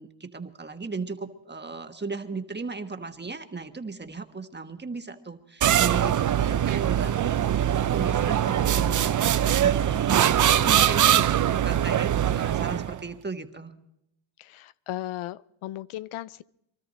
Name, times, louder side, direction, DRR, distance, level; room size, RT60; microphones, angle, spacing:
voice 1, 0.0-13.8, right 4 dB, 20° right, 7 dB, 1.3 m, -36 dB
sound 1, 5.6-13.0, right 10 dB, 40° right, 0.5 m, -22 dB
voice 2, 14.4-16.4, left 14 dB, 90° left, 16 dB, 0.6 m, -36 dB
23.5 x 13.5 x 4.2 m, 0.78 s
cardioid pair, 75°, 49 cm